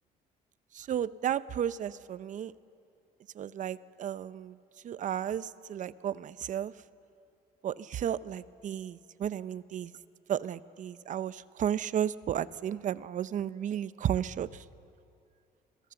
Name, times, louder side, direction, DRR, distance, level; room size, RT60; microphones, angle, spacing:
voice 1, 0.7-2.5 3.3-4.5 4.8-6.7 7.6-9.9 10.3-14.6, right 10 dB, 50° right, 16 dB, 0.7 m, -33 dB
29.5 x 21.5 x 7.0 m, 2.5 s
cardioid pair, 110°, 17 cm